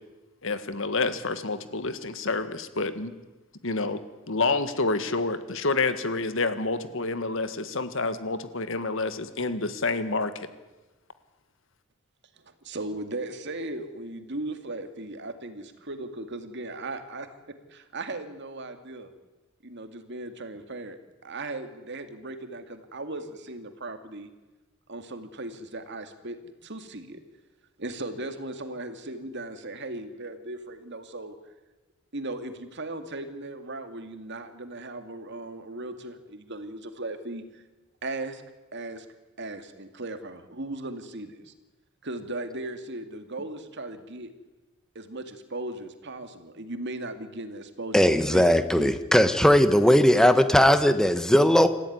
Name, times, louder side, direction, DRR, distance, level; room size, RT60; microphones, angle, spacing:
voice 1, 0.4-3.1 3.6-4.0 4.3-10.5, left 3 dB, 70° left, 11 dB, 1.8 m, -28 dB
voice 2, 12.4-19.1 19.6-24.3 24.9-27.2 27.8-31.4 32.1-37.6 38.0-38.4 38.7-39.1 39.4-41.5 42.0-44.3 44.9-49.0, right 2 dB, 60° right, 8 dB, 2.3 m, -37 dB
voice 3, 47.9-51.7, equal, 5° left, 10 dB, 1.4 m, -19 dB
27.0 x 14.5 x 9.6 m, 1.1 s
head